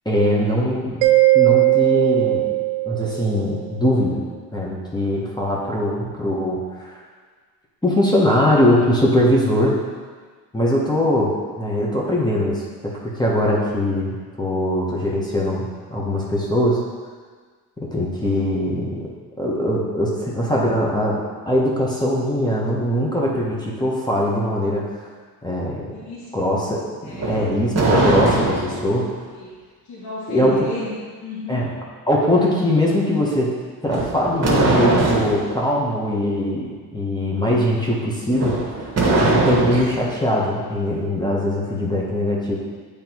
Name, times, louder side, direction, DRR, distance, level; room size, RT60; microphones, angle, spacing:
voice 1, 0.0-1.1 1.3-2.6 2.8-4.2 4.5-6.9 7.8-9.8 10.5-12.9 13.2-16.8 17.8-19.0 19.4-24.8 25.4-25.9 26.3-26.9 27.3-29.1 30.3-30.7 31.5-31.7 32.1-33.5 33.8-38.9 39.2-42.6, left 1 dB, 10° left, -4 dB, 1.5 m, -21 dB
Mallet percussion, 1.0-3.5, right 19 dB, 80° right, 0.6 m, -18 dB
voice 2, 25.9-26.5 27.1-27.3 29.3-29.6 29.9-31.7, left 2 dB, 60° left, -6 dB, 1.9 m, -33 dB
sound 1, 27.1-28.9 33.9-35.4 38.3-40.0, right 2 dB, 35° right, 1.6 m, -20 dB
7.8 x 3.5 x 4.6 m, 1.5 s
supercardioid pair, 85°, 43 cm